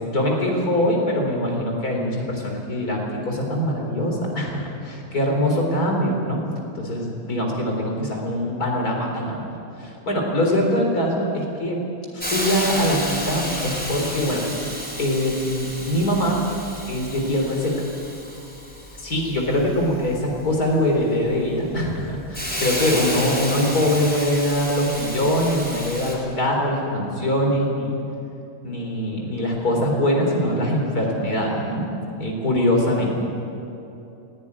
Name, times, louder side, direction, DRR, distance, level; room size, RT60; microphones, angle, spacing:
voice 1, 0.0-6.4 6.7-9.5 9.8-11.8 12.1-14.4 15.0-16.4 16.9-17.9 19.0-27.9 28.6-31.9 32.2-33.2, left 1 dB, 80° left, 0 dB, 4.4 m, -23 dB
Hiss, 12.2-26.1, equal, 5° left, 4.7 m, -31 dB
19.0 x 16.5 x 9.8 m, 2.8 s
omnidirectional pair, 1.6 m